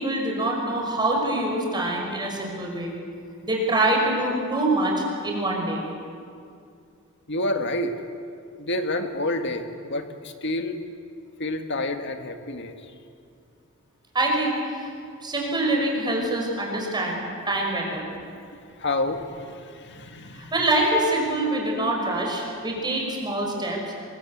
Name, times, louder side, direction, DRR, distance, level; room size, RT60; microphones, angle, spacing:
voice 1, 0.0-3.0 3.4-5.8 14.1-14.9 15.2-18.1 20.3-23.8, right 1 dB, 20° right, -1 dB, 5.7 m, -25 dB
voice 2, 7.3-7.9 8.6-10.8 11.4-12.8 18.8-20.5, left 1 dB, 55° left, 6 dB, 1.8 m, -29 dB
23.5 x 22.0 x 8.6 m, 2.4 s
head